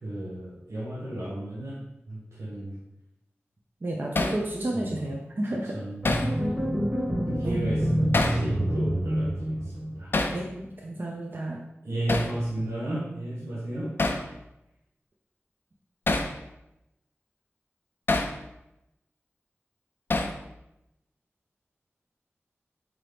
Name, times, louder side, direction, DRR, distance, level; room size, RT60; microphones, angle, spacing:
voice 1, 0.0-1.8 2.1-2.8 4.7-5.0 5.7-6.9 7.2-10.2 11.8-14.2, right 1 dB, 90° right, -7 dB, 0.9 m, -33 dB
voice 2, 3.8-5.7 7.4-7.6 10.3-11.6 13.4-13.5, right 1 dB, 45° right, -1 dB, 0.5 m, -32 dB
Hammer, 4.2-4.4 6.0-6.3 8.1-8.4 10.1-10.4 12.1-12.3 14.0-14.3 16.1-16.3 18.1-18.3 20.1-20.4, left 2 dB, 50° left, 0.4 m, -26 dB
sound 1, 6.0-10.3, equal, 15° right, 1.1 m, -27 dB
3.9 x 3.0 x 3.3 m, 0.90 s
wide cardioid pair, 65°, 5 cm